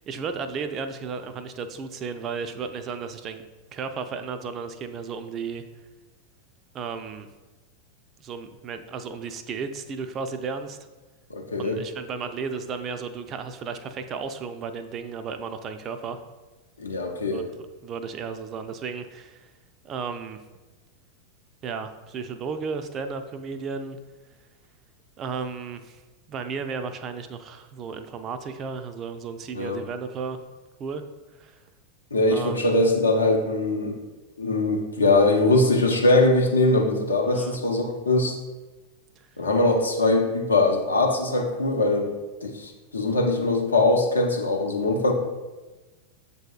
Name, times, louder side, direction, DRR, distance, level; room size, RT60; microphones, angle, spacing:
voice 1, 0.0-5.6 6.7-7.3 8.2-10.8 11.6-16.2 17.3-17.5 17.8-19.5 19.8-20.4 21.6-24.0 25.2-26.0 26.3-30.4 30.8-31.0 31.4-31.6 32.3-32.6 37.2-37.6, right 5 dB, 30° right, 9 dB, 0.3 m, -34 dB
voice 2, 11.3-11.8 16.8-17.4 29.5-29.8 32.1-34.0 34.4-38.4 39.4-42.1 42.4-45.1, left 2 dB, 75° left, 1 dB, 0.6 m, -22 dB
7.5 x 2.7 x 2.3 m, 1.2 s
figure-of-eight pair, 90°, 0 cm